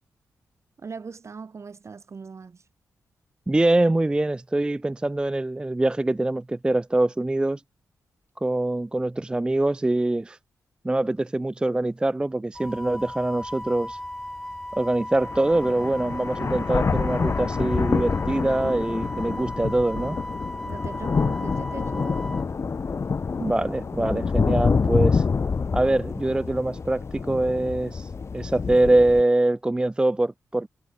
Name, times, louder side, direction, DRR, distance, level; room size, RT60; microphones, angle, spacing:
voice 1, 0.8-2.6 20.6-22.4, right 5 dB, 50° right, 3.6 m, -40 dB
voice 2, 3.5-7.6 8.4-10.4 10.8-14.0 14.7-20.2 23.4-25.2 25.7-30.7, right 2 dB, 15° right, 0.3 m, -24 dB
Wind instrument woodwind instrument, 12.5-22.4, left 1 dB, 5° left, 1.6 m, -37 dB
sound 1, 12.7-12.8 13.4-13.5 14.8-14.9 15.2-29.2, left 5 dB, 50° left, 1.4 m, -27 dB
cardioid pair, 65°, 6 cm